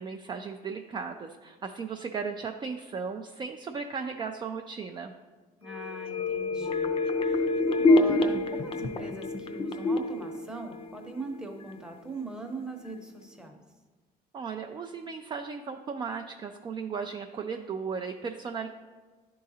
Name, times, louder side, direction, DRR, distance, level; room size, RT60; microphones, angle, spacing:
voice 1, 0.0-5.1 14.3-18.7, right 5 dB, 25° right, 4 dB, 0.3 m, -36 dB
voice 2, 5.6-6.9 7.2-13.6, right 2 dB, 5° right, 3 dB, 0.8 m, -40 dB
sound 1, 5.7-11.4 11.7-11.8, left 2 dB, 35° left, 0.5 m, -27 dB
10.5 x 3.8 x 2.7 m, 1.4 s
cardioid pair, 110°, 17 cm